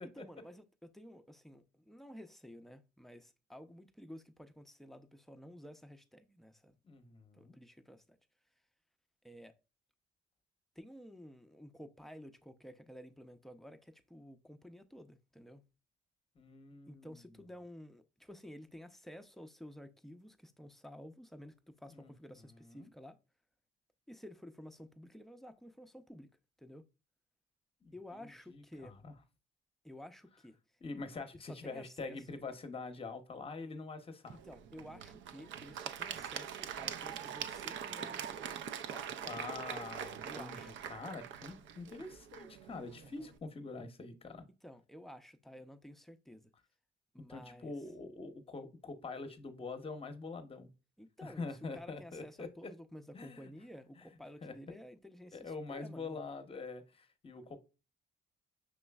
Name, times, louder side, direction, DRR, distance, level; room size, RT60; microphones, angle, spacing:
voice 1, 0.1-6.8 7.3-8.0 9.2-9.5 10.8-15.6 16.9-23.2 24.1-26.3 26.6-26.8 27.9-28.9 29.8-30.6 31.3-32.2 34.3-38.6 38.9-39.1 40.2-40.8 43.0-43.3 44.6-46.5 47.1-47.7 51.0-56.2, equal, ahead, 0.4 m, -52 dB
voice 2, 6.8-7.6 16.4-17.5 21.9-22.9 27.8-29.1 30.8-34.4 39.3-44.4 47.2-50.7 51.2-52.7 53.1-53.5 54.0-54.1 54.4-54.8 55.3-57.6, left 3 dB, 30° left, 0.7 m, -45 dB
Applause / Crowd, 34.3-43.3, right 8 dB, 70° right, 0.4 m, -43 dB
6.0 x 3.1 x 2.2 m
cardioid pair, 90°, 20 cm